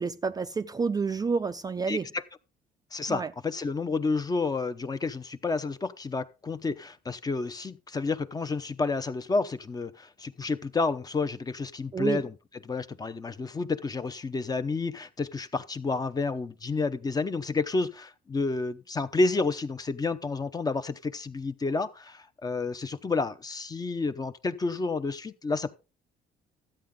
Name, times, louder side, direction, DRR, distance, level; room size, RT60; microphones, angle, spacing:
voice 1, 0.0-2.1 3.1-3.3 11.9-12.2, right 5 dB, 20° right, 0.4 m, -29 dB
voice 2, 1.9-2.2 2.9-12.3 12.7-25.7, left 3 dB, 20° left, 0.8 m, -30 dB
13.0 x 8.6 x 3.8 m
cardioid pair, 110°, 17 cm